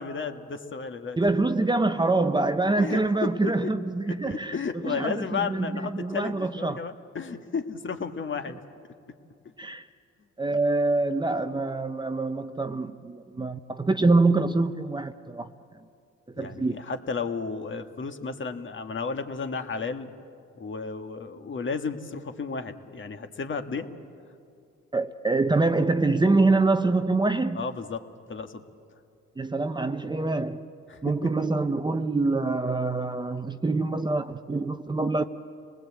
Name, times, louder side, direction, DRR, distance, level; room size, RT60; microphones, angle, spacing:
voice 1, 0.0-1.2 2.8-3.7 4.1-8.6 16.3-20.1 20.5-23.9 27.5-28.6 30.9-31.3, left 5 dB, 40° left, 1.7 m, -33 dB
voice 2, 1.2-4.5 4.8-6.8 9.6-9.8 10.4-15.5 16.4-16.7 24.9-27.7 29.4-30.7 31.0-35.2, right 3 dB, 15° right, 0.7 m, -25 dB
28.5 x 19.5 x 8.4 m
cardioid pair, 90°, 30 cm